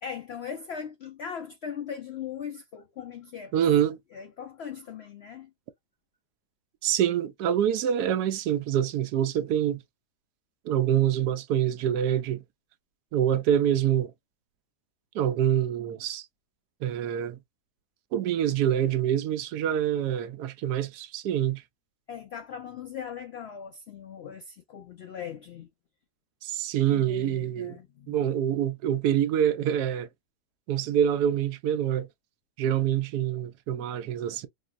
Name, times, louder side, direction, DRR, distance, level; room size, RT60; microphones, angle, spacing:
voice 1, 0.0-3.5 4.1-5.5 22.1-25.7 26.9-28.2, left 7 dB, 75° left, 0.5 m, -39 dB
voice 2, 3.5-4.0 6.8-9.8 10.6-12.4 13.1-14.1 15.1-16.3 16.8-17.4 18.1-21.6 26.4-27.8 28.1-30.1 30.7-32.1 32.6-34.5, right 10 dB, 85° right, 1.1 m, -26 dB
4.2 x 2.0 x 2.3 m
omnidirectional pair, 1.7 m